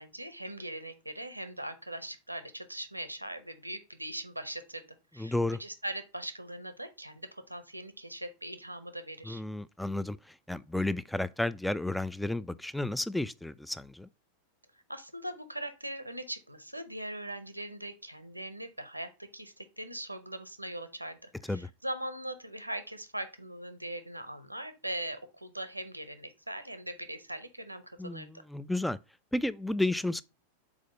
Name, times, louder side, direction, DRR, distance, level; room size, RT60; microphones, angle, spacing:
voice 1, 0.0-4.8 5.1-9.4 14.9-28.3, right 1 dB, 85° right, 0.7 m, -40 dB
voice 2, 5.2-5.6 9.3-14.1 21.5-21.7 28.0-29.0 29.3-30.2, left 2 dB, 5° left, 0.3 m, -32 dB
5.0 x 4.1 x 5.2 m
figure-of-eight pair, 90°, 0 cm